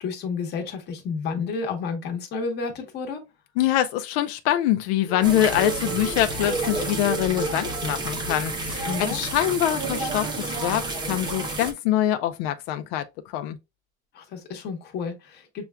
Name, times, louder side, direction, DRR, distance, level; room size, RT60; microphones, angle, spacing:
voice 1, 0.0-3.2 8.9-9.2 14.1-15.6, left 5 dB, 35° left, 1.0 m, -31 dB
voice 2, 3.6-13.0 13.3-13.6, left 12 dB, 85° left, 0.5 m, -24 dB
sound 1, 5.1-8.9 9.4-9.5 9.9-10.0, right 4 dB, 5° left, 1.1 m, -35 dB
sound 2, 5.2-11.7, right 2 dB, 15° right, 0.5 m, -30 dB
6.9 x 2.3 x 2.2 m
cardioid pair, 170°, 29 cm